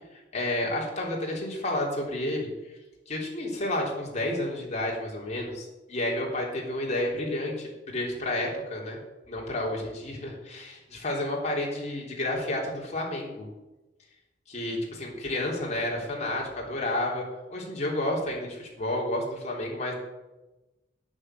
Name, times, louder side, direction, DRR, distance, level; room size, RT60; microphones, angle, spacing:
voice 1, 0.1-2.5 3.1-9.0 9.3-13.5 14.5-17.2 17.5-20.0, left 1 dB, 40° left, -2 dB, 3.6 m, -31 dB
9.8 x 9.2 x 7.7 m, 1.1 s
head